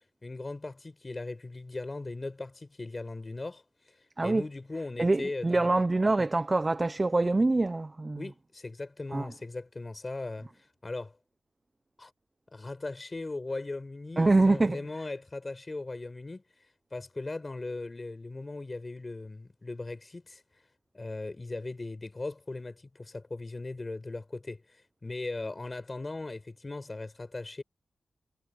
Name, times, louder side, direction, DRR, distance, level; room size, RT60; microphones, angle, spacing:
voice 1, 0.2-3.9 4.2-5.7 8.2-10.5 10.8-11.2 12.0-12.1 12.5-16.4 16.9-20.4 20.9-27.6, left 2 dB, 30° left, 4.6 m, -38 dB
voice 2, 5.0-8.2 9.1-9.3 14.2-14.8, right 2 dB, 30° right, 0.5 m, -25 dB
wide cardioid pair, 85°, 0 cm